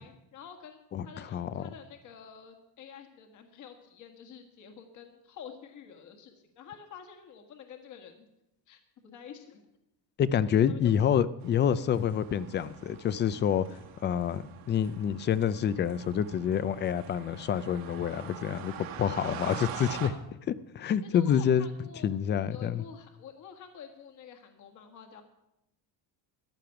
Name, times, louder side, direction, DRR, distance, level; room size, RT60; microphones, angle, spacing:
voice 1, 0.0-8.3 8.7-9.7 10.5-10.9 19.2-19.9 21.0-22.1 22.5-25.2, left 7 dB, 45° left, 5 dB, 1.7 m, -49 dB
voice 2, 1.3-1.7 10.2-13.7 14.0-20.1 20.5-21.7 22.0-22.8, left 8 dB, 30° left, 16 dB, 0.4 m, -27 dB
sound 1, 11.4-20.1, right 9 dB, 55° right, 1.7 m, -44 dB
14.5 x 10.5 x 5.8 m, 0.87 s
cardioid pair, 155°, 41 cm